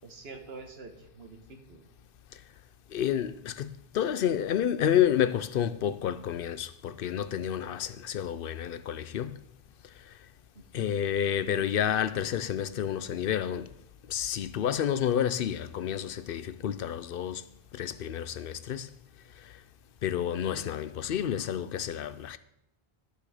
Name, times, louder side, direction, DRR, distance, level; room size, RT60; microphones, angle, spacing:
voice 1, 0.0-1.9 10.5-11.0, right 4 dB, 80° right, 1.5 m, -47 dB
voice 2, 2.9-9.4 10.1-10.2 10.7-13.7 14.1-17.4 17.7-18.9 19.4-19.5 20.0-22.4, left 9 dB, 65° left, 0.7 m, -30 dB
11.5 x 6.8 x 4.9 m
omnidirectional pair, 1.0 m